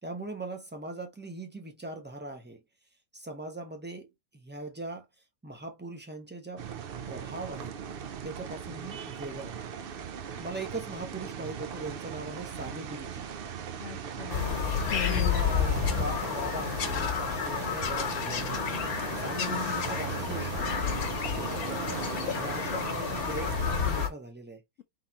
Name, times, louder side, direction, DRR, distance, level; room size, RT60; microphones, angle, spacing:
voice 1, 0.0-2.6 3.1-5.1 5.4-6.7 7.0-7.8 8.2-9.6 10.3-13.3 15.0-18.7 19.1-20.8 21.3-24.6, right 2 dB, 10° right, 0.8 m, -40 dB
sound 1, 6.6-24.1, right 8 dB, 60° right, 0.6 m, -38 dB
voice 2, 13.8-14.5 14.8-15.4 19.4-19.7, left 12 dB, 65° left, 0.8 m, -38 dB
Bird vocalization bird call bird song, 14.3-24.1, left 7 dB, 85° left, 1.4 m, -30 dB
4.0 x 3.6 x 2.9 m
omnidirectional pair, 1.5 m